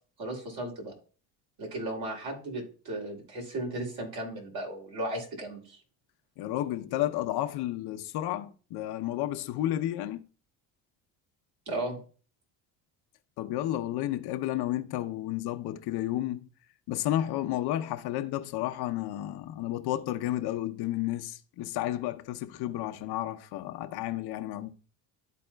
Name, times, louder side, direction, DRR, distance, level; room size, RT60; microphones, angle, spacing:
voice 1, 0.2-0.9 1.6-5.8 11.7-12.0, right 1 dB, 60° right, 2.9 m, -35 dB
voice 2, 6.4-10.2 13.4-16.5 16.9-24.7, left 13 dB, 65° left, 0.8 m, -32 dB
12.5 x 4.2 x 2.2 m
supercardioid pair, 90°, 42 cm